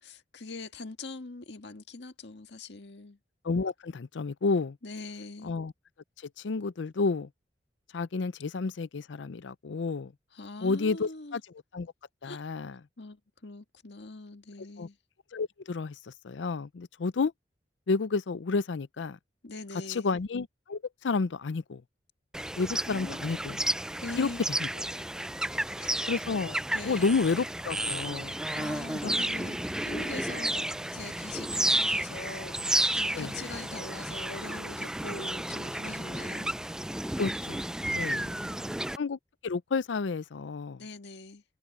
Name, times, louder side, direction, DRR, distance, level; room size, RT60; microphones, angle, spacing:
voice 1, 0.0-3.2 4.8-5.6 10.3-11.4 12.2-12.4 13.0-15.0 19.4-20.1 22.9-23.2 24.0-24.4 25.7-26.1 26.7-27.2 28.6-30.7 30.9-36.5 38.1-38.8 40.8-41.4, left 3 dB, 70° left, 1.8 m, -42 dB
voice 2, 3.4-4.8 5.4-5.7 6.2-7.3 7.9-10.1 10.6-11.4 11.7-11.9 12.2-12.8 14.8-14.9 15.3-17.3 17.9-19.2 19.9-21.8 22.6-23.6 24.2-24.3 24.6-25.0 26.1-26.6 26.8-28.4 29.0-29.2 33.1-33.4 37.2-37.6 37.9-38.2 39.0-40.8, left 4 dB, 90° left, 0.5 m, -31 dB
sound 1, 22.3-39.0, right 1 dB, 5° right, 0.3 m, -32 dB
head